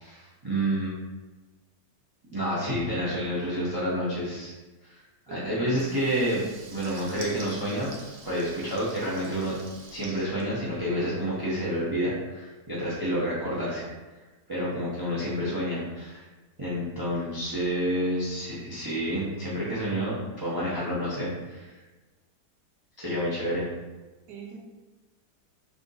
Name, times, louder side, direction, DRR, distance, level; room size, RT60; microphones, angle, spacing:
voice 1, 0.0-0.9 2.3-4.5 4.8-7.9 8.2-9.6 9.9-13.9 14.5-16.2 16.6-21.7 23.0-23.7, equal, 30° right, -8 dB, 0.4 m, -29 dB
voice 2, 5.3-6.0 24.3-24.6, right 4 dB, 90° right, 0 dB, 1.3 m, -42 dB
Water tap faucet / Liquid, 5.7-11.2, right 3 dB, 70° right, 1.2 m, -47 dB
3.5 x 2.6 x 3.8 m, 1.2 s
omnidirectional pair, 1.8 m